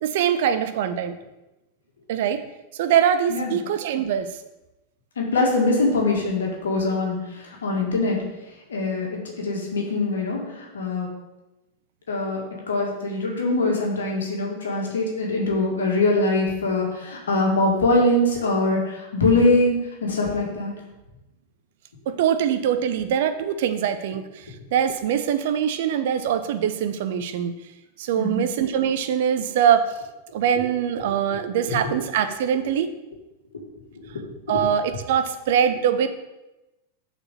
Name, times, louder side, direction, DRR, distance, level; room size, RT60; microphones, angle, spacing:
voice 1, 0.0-1.2 2.1-2.4 2.7-4.3 22.1-24.2 24.7-27.5 28.0-29.9 30.3-32.9 34.5-36.1, right 9 dB, 55° right, 9 dB, 0.7 m, -23 dB
voice 2, 5.2-8.2 8.7-11.1 12.1-12.4 12.7-20.7 28.2-28.4 31.3-31.8 34.1-34.2 34.5-34.6, left 2 dB, 65° left, -1 dB, 2.0 m, -23 dB
6.8 x 4.4 x 6.8 m, 1.0 s
figure-of-eight pair, 90°, 0 cm